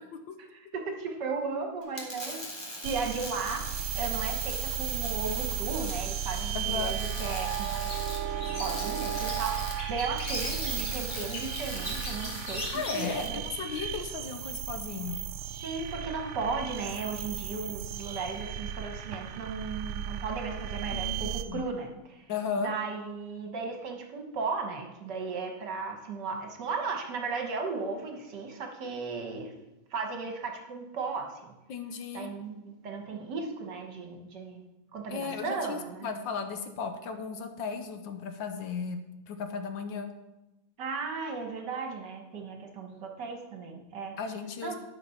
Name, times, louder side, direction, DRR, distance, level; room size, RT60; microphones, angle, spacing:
voice 1, 0.5-7.9 8.6-12.7 12.9-13.5 15.6-22.3 22.6-29.5 29.9-31.5 32.1-34.6 34.9-36.1 40.8-44.2 44.6-44.8, right 4 dB, 60° right, 3 dB, 1.7 m, -36 dB
sound 1, 1.8-13.3, left 1 dB, 15° left, 1.8 m, -41 dB
sound 2, 2.8-21.4, right 10 dB, 85° right, 1.5 m, -35 dB
sound 3, 5.8-14.2 14.4-14.5, equal, 40° left, 2.4 m, -41 dB
voice 2, 6.5-6.9 12.7-13.2 13.6-15.2 20.9-21.6 22.3-22.7 31.7-32.3 35.1-39.0 39.3-40.1 44.2-44.8, left 5 dB, 70° left, 7 dB, 1.5 m, -35 dB
10.5 x 6.1 x 5.7 m, 0.98 s
omnidirectional pair, 2.2 m